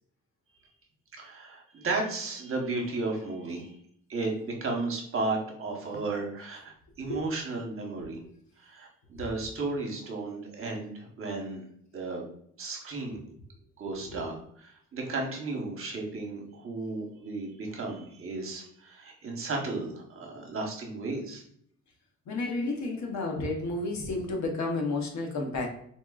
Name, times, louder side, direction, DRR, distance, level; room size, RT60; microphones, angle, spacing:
voice 1, 1.2-3.7 4.1-8.2 8.6-11.7 11.9-12.2 12.6-13.2 13.8-21.4, right 3 dB, 45° right, 1 dB, 1.0 m, -34 dB
voice 2, 22.3-25.7, left 2 dB, 65° left, 1 dB, 0.9 m, -31 dB
4.3 x 2.4 x 2.3 m, 0.68 s
cardioid pair, 90°, 30 cm